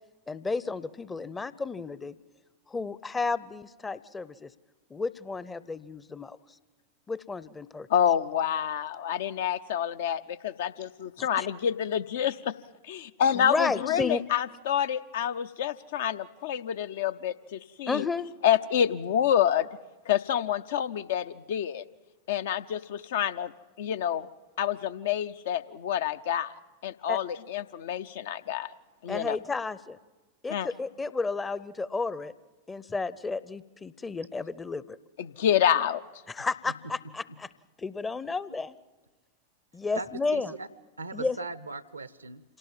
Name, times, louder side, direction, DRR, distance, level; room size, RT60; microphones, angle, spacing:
voice 1, 0.3-2.1 2.7-4.5 4.9-6.4 7.1-7.9 11.2-11.5 13.3-14.2 17.9-18.3 27.1-27.2 29.1-30.0 30.4-32.3 32.7-35.0 36.3-37.5 37.8-38.8 39.7-40.5 41.1-41.4, left 4 dB, 15° left, 17 dB, 0.7 m, -32 dB
voice 2, 7.9-12.5 12.8-18.1 18.4-19.7 20.1-21.8 22.3-23.5 23.8-24.3 24.6-26.5 26.8-28.8 29.0-29.4 30.5-30.7 35.2-36.0, left 9 dB, 55° left, 12 dB, 0.6 m, -28 dB
voice 3, 39.9-40.7 41.0-42.4, right 3 dB, 80° right, 17 dB, 0.8 m, -39 dB
26.5 x 17.5 x 7.4 m, 1.2 s
figure-of-eight pair, 90°, 0 cm